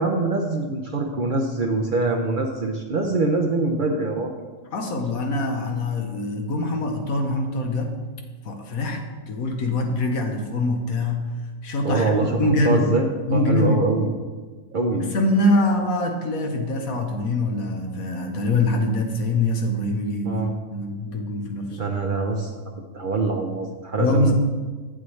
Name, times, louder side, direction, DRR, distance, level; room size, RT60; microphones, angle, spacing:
voice 1, 0.0-4.3 11.8-14.1 14.7-15.1 20.2-20.5 21.7-22.5 22.9-24.3, right 3 dB, 50° right, 2 dB, 0.6 m, -24 dB
voice 2, 4.7-7.9 8.4-11.3 11.6-12.9 13.3-13.8 15.0-21.8 24.0-24.3, left 2 dB, 85° left, 3 dB, 1.5 m, -24 dB
8.7 x 8.2 x 3.2 m, 1.4 s
omnidirectional pair, 1.4 m